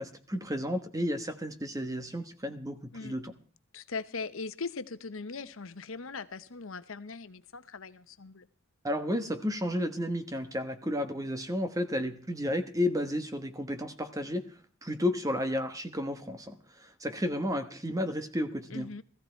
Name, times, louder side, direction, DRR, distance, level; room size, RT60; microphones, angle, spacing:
voice 1, 0.0-3.3 8.8-14.5 14.8-18.9, left 1 dB, 15° right, 1.2 m, -32 dB
voice 2, 3.7-8.5 18.7-19.0, left 4 dB, 70° left, 1.0 m, -40 dB
18.0 x 14.5 x 4.5 m
head